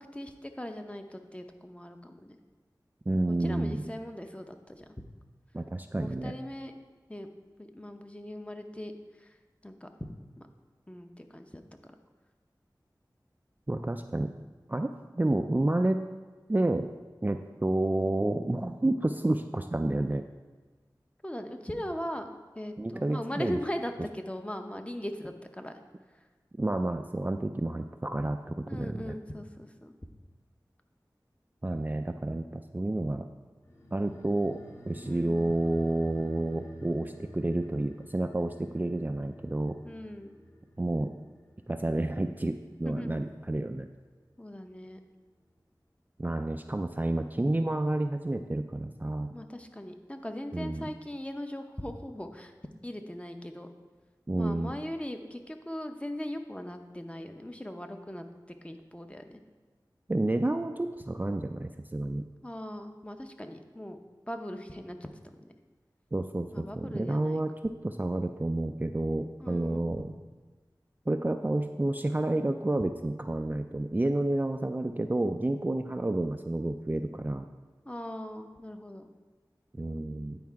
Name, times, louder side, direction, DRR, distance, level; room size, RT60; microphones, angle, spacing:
voice 1, 0.1-2.3 3.2-4.8 5.9-6.7 7.1-7.3 7.6-8.9 9.2-9.3 9.6-10.1 10.4-10.5 10.9-11.6 21.2-25.7 28.7-29.9 35.0-35.5 39.8-40.4 42.8-43.2 44.4-45.0 49.3-52.5 52.8-53.7 54.4-58.3 58.6-59.4 62.4-64.0 64.3-65.0 65.2-65.5 66.5-67.4 69.4-70.0 77.8-79.1, equal, 15° left, 6 dB, 0.7 m, -39 dB
voice 2, 3.1-3.8 5.5-6.3 13.7-14.3 14.7-16.0 16.5-16.9 17.2-20.2 22.8-23.6 26.6-29.1 31.6-33.3 33.9-39.8 40.8-41.1 41.7-43.9 46.2-49.3 50.5-50.9 54.3-54.7 60.1-62.3 66.1-70.1 71.1-77.5 79.7-80.4, right 2 dB, 20° right, 6 dB, 0.3 m, -30 dB
sound 1, 33.6-44.5 44.8-44.9, equal, 35° left, 1.3 m, -51 dB
9.5 x 4.7 x 4.6 m, 1.3 s
wide cardioid pair, 45°, 8 cm